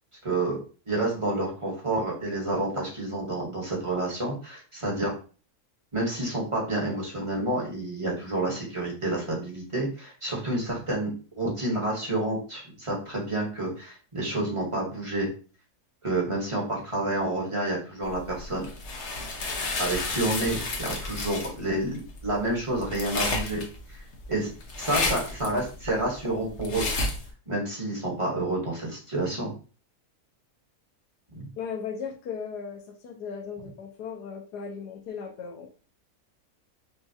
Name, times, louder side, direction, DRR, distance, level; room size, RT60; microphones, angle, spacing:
voice 1, 0.2-0.6 0.9-5.1 5.9-15.3 16.0-18.7 19.8-23.6 23.9-24.0 24.3-24.5 24.8-26.9 27.5-29.5 31.3-31.5, right 2 dB, 20° right, -3 dB, 1.2 m, -29 dB
sound 1, 18.1-27.3, left 3 dB, 50° left, 1.1 m, -32 dB
voice 2, 31.6-35.7, left 6 dB, 85° left, 4 dB, 1.4 m, -37 dB
5.6 x 2.4 x 2.7 m, 0.37 s
omnidirectional pair, 1.7 m